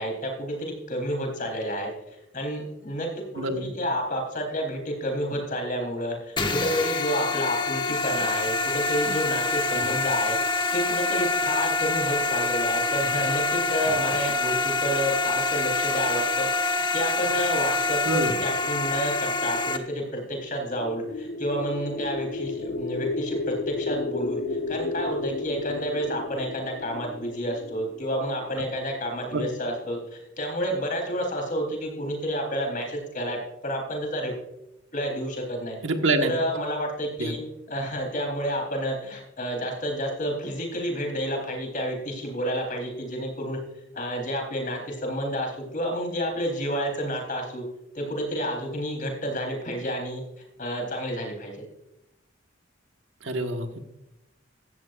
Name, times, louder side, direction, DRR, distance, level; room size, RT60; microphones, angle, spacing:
voice 1, 0.0-1.9 2.3-24.4 24.7-33.4 33.6-34.3 34.9-35.8 36.2-37.4 37.7-43.6 43.9-47.6 47.9-50.2 50.6-51.6, equal, 40° left, 2 dB, 4.0 m, -30 dB
voice 2, 3.4-3.7 18.0-18.3 29.3-29.5 35.8-36.3 37.2-37.3 53.2-53.8, right 2 dB, 70° right, 4 dB, 1.5 m, -26 dB
sound 1, 6.4-19.8, left 3 dB, 25° left, 1.0 m, -26 dB
sound 2, 20.6-28.7, left 3 dB, 80° left, 1.3 m, -33 dB
16.0 x 14.0 x 2.6 m, 0.89 s
head